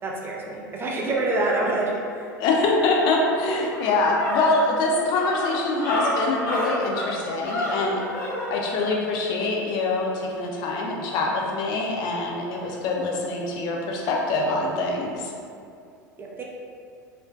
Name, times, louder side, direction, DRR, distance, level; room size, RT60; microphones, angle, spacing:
voice 1, 0.0-2.3 16.2-16.4, right 2 dB, 20° right, -2 dB, 0.4 m, -26 dB
voice 2, 2.4-8.0 8.5-15.2, left 3 dB, 45° left, -1 dB, 0.4 m, -24 dB
sound 1, 3.0-3.1 3.5-8.5, left 1 dB, 70° left, 0.8 m, -29 dB
2.5 x 2.1 x 2.3 m, 2.3 s
figure-of-eight pair, 80°, 10 cm